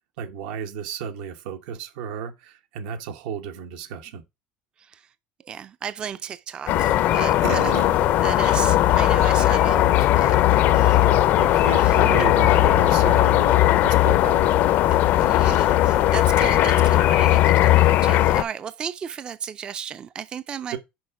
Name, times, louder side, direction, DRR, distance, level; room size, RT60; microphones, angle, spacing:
voice 1, 0.2-4.2 7.4-7.9 11.0-14.6 20.7-20.8, right 8 dB, 90° right, 1.1 m, -33 dB
voice 2, 5.4-7.7 8.2-10.4 10.7-11.1 11.8-12.0 14.9-20.8, right 8 dB, 20° right, 0.3 m, -34 dB
sound 1, 6.7-18.4, left 14 dB, 45° left, 0.5 m, -18 dB
6.3 x 5.1 x 4.6 m
cardioid pair, 165°, 4 cm